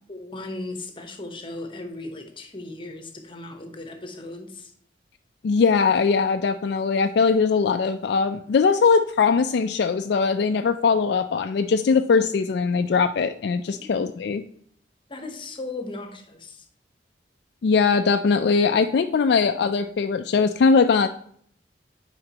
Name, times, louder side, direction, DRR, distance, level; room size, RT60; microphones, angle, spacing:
voice 1, 0.1-4.7 13.7-14.1 15.1-16.6, left 2 dB, 30° left, 5 dB, 1.0 m, -37 dB
voice 2, 5.4-14.4 17.6-21.1, left 5 dB, 65° left, 7 dB, 0.3 m, -21 dB
8.7 x 5.0 x 2.9 m, 0.62 s
head